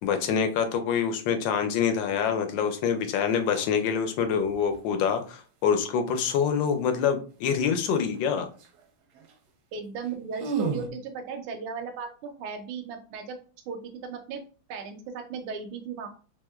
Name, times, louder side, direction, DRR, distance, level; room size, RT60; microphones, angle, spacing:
voice 1, 0.0-8.5, left 7 dB, 75° left, 7 dB, 1.2 m, -26 dB
sound 1, 2.5-2.7 3.3-3.8 4.2-4.8 8.1-8.2 8.5-8.8 9.1-9.3 9.8-9.9 10.0-10.9, right 5 dB, 70° right, 0.9 m, -33 dB
voice 2, 9.7-13.4 13.7-14.4 14.7-16.1, right 5 dB, 85° right, 5 dB, 1.4 m, -36 dB
3.5 x 3.1 x 2.3 m, 0.38 s
omnidirectional pair, 2.3 m